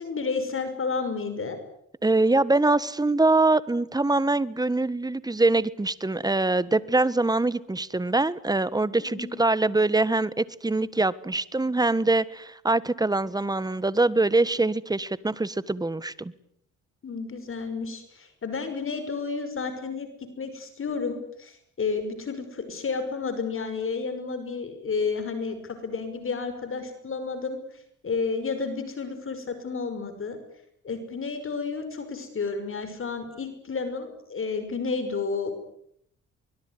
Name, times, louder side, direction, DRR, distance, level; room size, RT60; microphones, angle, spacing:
voice 1, 0.0-1.6 9.0-9.4 17.0-20.1 20.4-27.6 28.0-30.4 30.8-35.5, left 4 dB, 45° left, 9 dB, 5.9 m, -31 dB
voice 2, 2.0-16.3, right 2 dB, 15° right, 17 dB, 1.4 m, -24 dB
24.5 x 21.5 x 9.8 m, 0.70 s
cardioid pair, 90°, 30 cm